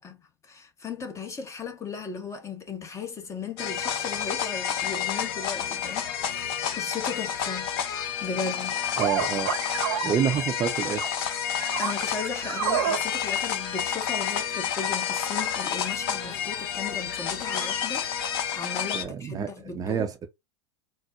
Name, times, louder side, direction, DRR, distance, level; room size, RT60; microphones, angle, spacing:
voice 1, 0.0-6.4 6.7-7.7 8.2-8.8 11.8-20.1, left 5 dB, 20° left, 0.9 m, -36 dB
sound 1, 3.6-19.0, left 8 dB, 55° left, 0.9 m, -30 dB
voice 2, 9.0-9.5 10.0-11.0 18.9-20.3, right 8 dB, 25° right, 0.7 m, -28 dB
sound 2, 9.0-10.5 10.9-11.1 11.6-13.0, right 9 dB, 55° right, 1.0 m, -29 dB
4.3 x 2.1 x 2.4 m
hypercardioid pair, 95°, 15 cm